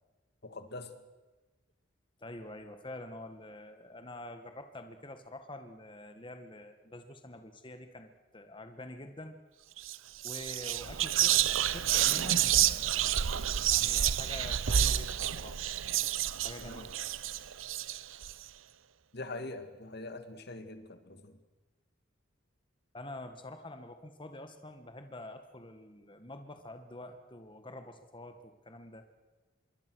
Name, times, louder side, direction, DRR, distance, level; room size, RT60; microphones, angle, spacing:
voice 1, 0.4-1.0 16.6-16.9 19.1-21.4, left 2 dB, 55° left, 9 dB, 2.1 m, -43 dB
voice 2, 2.2-9.4 10.2-13.2 13.7-15.6 16.4-17.2 22.9-29.1, left 1 dB, 25° left, 7 dB, 1.8 m, -46 dB
Whispering, 9.8-10.0 10.2-18.3, right 11 dB, 85° right, 0.8 m, -29 dB
25.5 x 23.0 x 6.4 m, 1.2 s
head